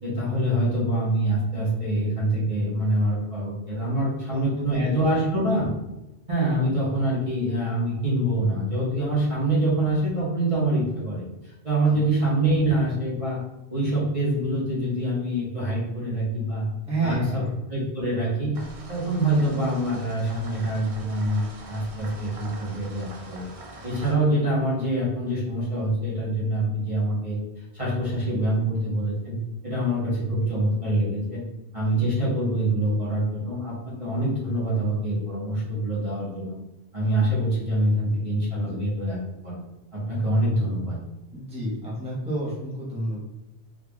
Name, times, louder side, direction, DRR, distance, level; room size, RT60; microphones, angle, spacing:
voice 1, 0.0-5.7 6.3-13.4 13.7-16.7 17.0-17.4 17.7-18.6 18.9-23.5 23.8-27.4 27.7-29.4 29.6-31.4 31.7-36.6 36.9-39.2 39.4-39.6 39.9-41.0, right 1 dB, 30° right, -8 dB, 1.1 m, -25 dB
voice 2, 4.3-4.9 11.9-12.0 16.9-17.5 38.6-38.8 41.3-43.2, right 2 dB, 5° right, -7 dB, 1.0 m, -30 dB
sound 1, 18.5-24.1, right 1 dB, 45° right, 0.4 m, -43 dB
3.8 x 3.3 x 2.3 m, 0.98 s
omnidirectional pair, 1.1 m